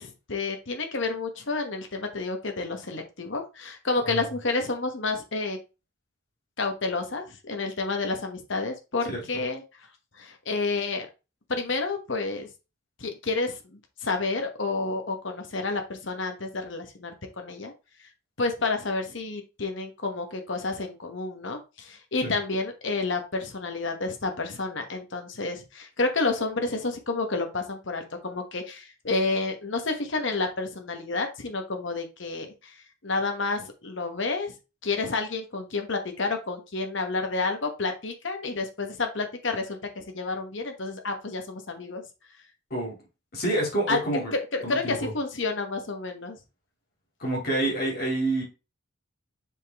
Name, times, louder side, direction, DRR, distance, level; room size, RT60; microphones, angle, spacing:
voice 1, 0.0-5.6 6.6-9.6 10.2-11.1 11.5-12.5 13.0-17.7 18.4-32.7 33.0-34.5 34.8-42.0 43.9-44.0 44.3-46.4, left 3 dB, 65° left, 5 dB, 1.1 m, -30 dB
voice 2, 9.1-9.4 22.2-22.3 42.7-43.0 43.3-44.3 44.6-45.1 47.2-48.4, right 1 dB, 50° left, -1 dB, 2.6 m, -28 dB
7.3 x 3.7 x 3.5 m, 0.29 s
head